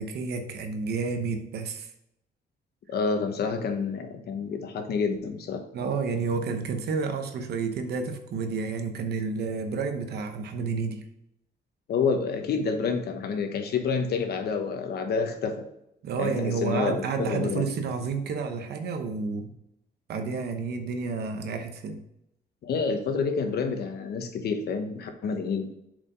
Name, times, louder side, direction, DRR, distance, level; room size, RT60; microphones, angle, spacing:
voice 1, 0.0-1.9 5.7-11.0 16.0-19.5 20.1-22.0, right 4 dB, 80° right, 6 dB, 1.0 m, -30 dB
voice 2, 2.9-5.6 11.9-15.6 16.2-17.6 22.6-25.7, left 5 dB, 75° left, 6 dB, 1.1 m, -28 dB
7.4 x 5.0 x 3.9 m, 0.81 s
cardioid pair, 125°, 17 cm